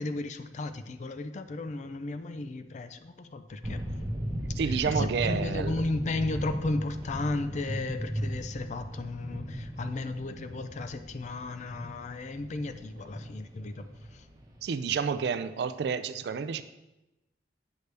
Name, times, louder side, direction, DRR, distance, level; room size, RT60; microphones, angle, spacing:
voice 1, 0.0-3.8 4.6-13.8 14.1-14.3, left 2 dB, 40° left, 10 dB, 0.4 m, -34 dB
sound 1, 3.6-15.1, equal, 20° right, 1.1 m, -37 dB
voice 2, 4.6-5.8 14.6-16.6, right 6 dB, 65° right, 12 dB, 0.3 m, -30 dB
8.2 x 6.5 x 3.3 m, 1.0 s
head